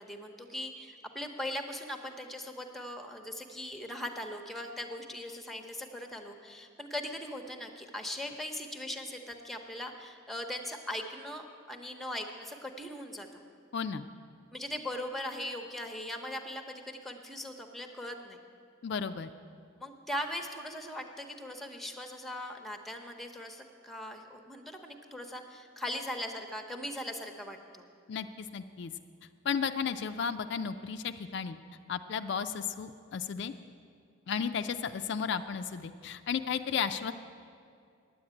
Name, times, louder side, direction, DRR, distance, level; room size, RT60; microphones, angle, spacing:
voice 1, 0.0-13.4 14.5-18.4 19.8-27.8, left 1 dB, ahead, 5 dB, 0.7 m, -40 dB
voice 2, 13.7-14.1 18.8-19.3 28.1-28.9 29.5-31.6 31.9-33.5 34.3-37.1, left 6 dB, 60° left, 9 dB, 0.4 m, -34 dB
9.8 x 8.5 x 8.8 m, 2.4 s
head